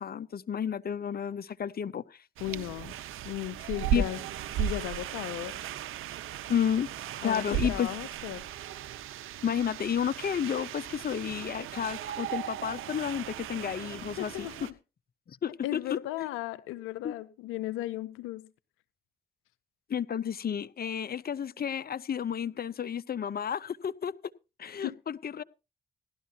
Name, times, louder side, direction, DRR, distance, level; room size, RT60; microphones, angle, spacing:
voice 1, 0.0-2.2 3.9-4.0 6.5-6.9 7.2-7.9 9.4-14.5 15.3-16.3 17.0-17.1 19.9-24.1 24.6-25.4, left 8 dB, 50° left, 0.7 m, -31 dB
voice 2, 2.4-2.9 3.2-4.2 4.6-5.6 7.2-8.4 14.2-14.7 15.6-18.5 24.8-25.0, left 15 dB, 90° left, 0.5 m, -36 dB
sound 1, 2.4-14.7, right 10 dB, 80° right, 0.9 m, -36 dB
17.0 x 12.0 x 2.8 m
supercardioid pair, 45°, 21 cm